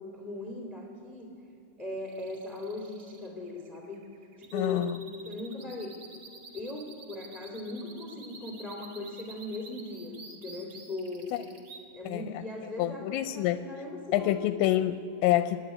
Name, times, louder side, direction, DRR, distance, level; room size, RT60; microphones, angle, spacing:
voice 1, 0.0-1.3 1.8-4.0 4.4-4.8 5.2-5.9 6.5-11.3 11.9-14.7, left 2 dB, 20° left, 1 dB, 1.4 m, -39 dB
sound 1, 2.0-11.8, right 3 dB, 75° right, 1.0 m, -49 dB
voice 2, 4.5-5.0 12.1-12.4 12.8-13.6 14.1-15.6, left 13 dB, 85° left, 11 dB, 2.8 m, -27 dB
26.5 x 11.0 x 9.7 m, 2.7 s
omnidirectional pair, 5.2 m